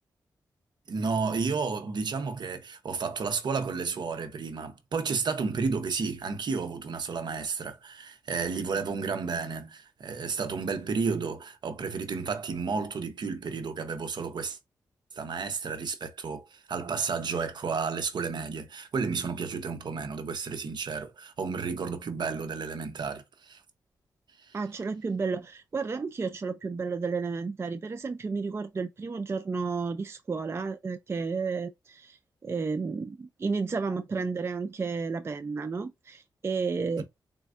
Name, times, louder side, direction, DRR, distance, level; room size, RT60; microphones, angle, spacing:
voice 1, 0.9-14.6 15.2-23.6 24.5-24.6, right 5 dB, 65° right, 0.8 m, -32 dB
voice 2, 24.5-37.0, right 4 dB, 35° right, 0.3 m, -32 dB
4.2 x 2.2 x 2.4 m
cardioid pair, 65°, 8 cm